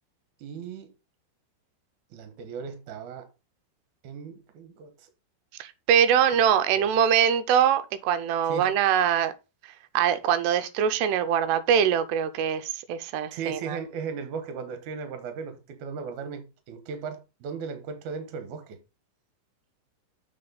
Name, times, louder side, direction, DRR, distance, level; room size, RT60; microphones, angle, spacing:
voice 1, 0.4-0.9 2.1-3.3 4.0-5.1 6.3-6.4 6.7-6.9 8.5-8.7 13.3-18.8, right 6 dB, 65° right, 2.1 m, -37 dB
voice 2, 5.6-9.3 9.9-13.8, right 8 dB, 90° right, 2.7 m, -23 dB
7.7 x 4.6 x 3.9 m
omnidirectional pair, 4.8 m